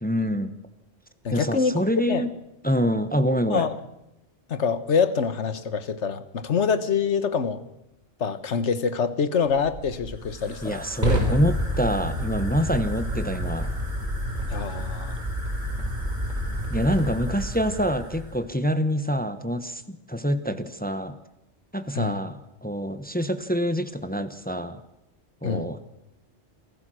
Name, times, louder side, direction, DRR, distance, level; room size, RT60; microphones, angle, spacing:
voice 1, 0.0-0.5 1.3-2.3 2.6-3.7 10.6-13.8 16.7-21.2 21.7-24.8 25.4-25.8, equal, 10° left, 10 dB, 0.9 m, -26 dB
voice 2, 1.2-2.2 3.5-3.7 4.5-7.6 8.2-10.8 14.5-15.2 21.9-22.2 25.4-25.7, left 6 dB, 70° left, 13 dB, 1.5 m, -25 dB
Fire, 9.6-18.4, equal, 40° right, 4.8 m, -29 dB
28.0 x 15.0 x 6.3 m, 0.88 s
omnidirectional pair, 1.2 m